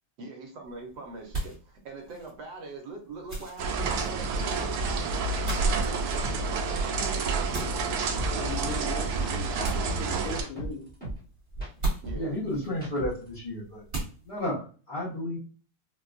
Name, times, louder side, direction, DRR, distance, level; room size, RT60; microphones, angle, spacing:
voice 1, 0.2-7.8 12.0-12.3, right 2 dB, 70° right, 2 dB, 1.1 m, -42 dB
sound 1, 0.6-14.5, right 2 dB, 35° right, 1.2 m, -40 dB
sound 2, 3.6-10.4, right 4 dB, 85° right, 0.8 m, -29 dB
sound 3, 3.8-3.9 4.3-4.5 4.8-6.4 6.7-8.8 9.1-11.2 11.5-13.3, right 2 dB, 5° left, 0.8 m, -38 dB
voice 2, 8.3-10.9, left 6 dB, 90° left, 5 dB, 1.5 m, -38 dB
voice 3, 12.1-13.8 14.3-15.4, left 1 dB, 60° left, -7 dB, 0.5 m, -32 dB
4.1 x 2.2 x 2.4 m, 0.38 s
omnidirectional pair, 2.2 m